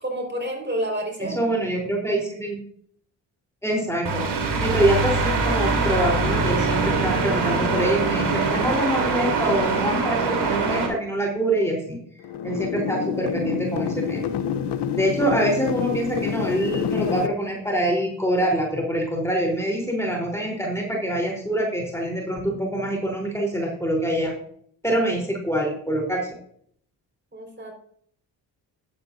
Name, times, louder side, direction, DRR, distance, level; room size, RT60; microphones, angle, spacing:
voice 1, 0.0-1.4 27.3-27.7, equal, 25° right, 2 dB, 5.0 m, -29 dB
voice 2, 1.2-2.6 3.6-4.2 4.6-12.0 12.4-14.3 15.0-24.3 24.8-26.2, right 1 dB, 5° left, -1 dB, 3.9 m, -25 dB
sound 1, 4.0-10.9, right 3 dB, 55° right, 3.8 m, -23 dB
sound 2, 12.2-17.3, left 8 dB, 60° left, 1.0 m, -27 dB
12.0 x 10.5 x 2.7 m, 0.63 s
hypercardioid pair, 50°, 46 cm